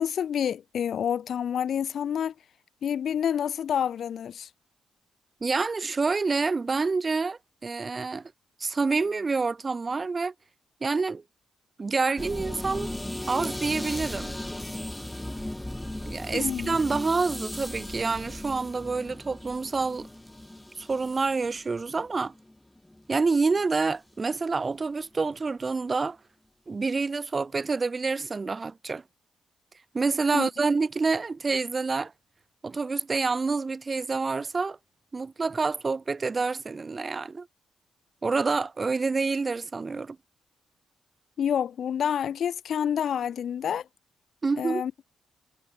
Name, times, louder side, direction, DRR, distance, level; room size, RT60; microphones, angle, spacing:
voice 1, 0.0-2.3 2.8-4.5 16.3-16.8 30.3-30.5 41.4-43.9 44.6-44.9, left 8 dB, 70° left, 1.7 m, -28 dB
voice 2, 5.4-8.3 8.6-10.3 10.8-11.2 11.8-12.9 13.3-14.3 16.0-20.1 20.8-22.3 23.1-26.2 26.7-29.0 29.9-32.1 32.6-34.8 35.1-37.5 38.2-40.2 44.4-44.8, right 4 dB, 30° right, 2.2 m, -27 dB
sound 1, 12.2-23.2 23.5-23.9, left 1 dB, 10° left, 1.6 m, -37 dB
cardioid pair, 90°, 0 cm